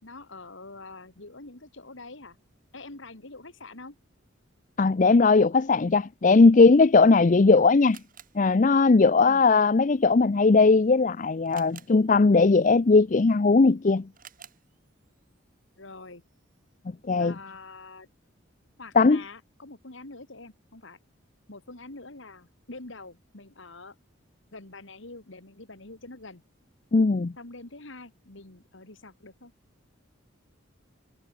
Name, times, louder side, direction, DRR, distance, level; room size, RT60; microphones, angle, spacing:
voice 1, 0.0-2.4 2.7-4.0 9.2-9.4 15.8-16.2 17.2-18.1 18.8-21.0 21.5-24.0 24.5-26.4 27.4-29.5, left 3 dB, 65° left, 2.3 m, -45 dB
voice 2, 4.8-8.0 8.4-14.0 17.1-17.4 19.0-19.2 26.9-27.3, left 3 dB, 40° left, 0.5 m, -19 dB
Camera, 6.9-16.8, right 9 dB, 40° right, 8.0 m, -57 dB
head